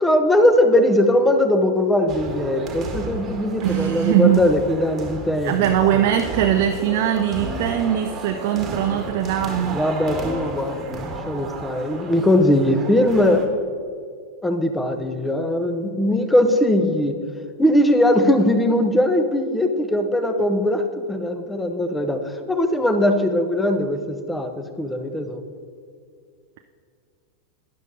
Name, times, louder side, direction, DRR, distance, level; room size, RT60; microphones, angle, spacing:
voice 1, 0.0-6.0 9.7-13.5 14.4-17.2 17.6-25.4, left 1 dB, 5° left, 8 dB, 0.7 m, -20 dB
sound 1, 2.1-13.5, right 2 dB, 25° right, 1.4 m, -33 dB
voice 2, 3.6-4.4 5.4-9.8, right 11 dB, 50° right, 6 dB, 0.4 m, -21 dB
12.0 x 10.0 x 2.8 m, 2.2 s
figure-of-eight pair, 90°, 0 cm